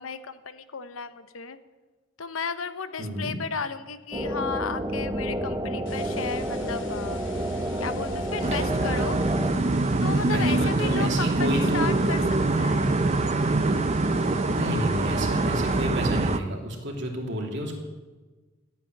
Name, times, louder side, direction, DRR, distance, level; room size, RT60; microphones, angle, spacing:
voice 1, 0.0-1.6 2.2-7.2 7.8-9.2 10.0-12.2 12.6-12.9, left 5 dB, 90° left, 12 dB, 0.9 m, -34 dB
voice 2, 3.0-3.4 8.5-8.6 10.3-11.9 14.4-17.7, equal, 60° right, 1 dB, 2.9 m, -30 dB
sound 1, 4.1-9.5, equal, 20° right, 1.0 m, -30 dB
sound 2, 5.9-15.9, left 2 dB, 65° left, 2.6 m, -44 dB
sound 3, 8.4-16.4, right 2 dB, 35° right, 0.7 m, -24 dB
13.0 x 9.1 x 9.1 m, 1.3 s
head